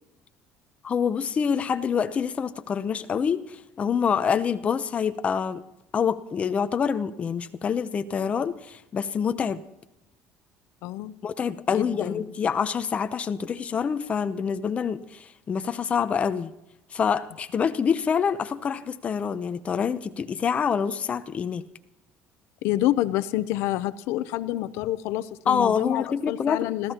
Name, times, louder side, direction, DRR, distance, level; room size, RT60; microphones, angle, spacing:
voice 1, 0.8-5.6 5.9-9.6 11.2-16.5 16.9-21.6 25.5-26.7, left 7 dB, 30° left, 0.7 m, -26 dB
voice 2, 10.8-11.1 11.7-12.2 22.6-26.9, left 15 dB, 85° left, 0.6 m, -28 dB
28.5 x 14.0 x 2.9 m
cardioid pair, 145°, 4 cm